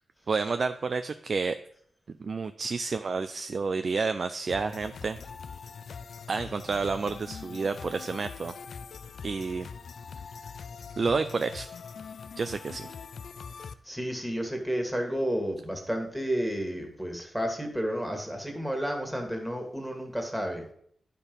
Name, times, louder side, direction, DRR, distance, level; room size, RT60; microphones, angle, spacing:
voice 1, 0.3-1.6 2.2-5.2 6.3-8.5 9.2-9.7 11.0-11.7 12.4-12.9, right 4 dB, 55° right, 9 dB, 0.4 m, -30 dB
sound 1, 4.5-13.8, left 6 dB, 75° left, 0.4 m, -43 dB
voice 2, 13.8-20.7, equal, ahead, 2 dB, 1.8 m, -31 dB
9.9 x 4.5 x 5.3 m, 0.64 s
wide cardioid pair, 90°, 0 cm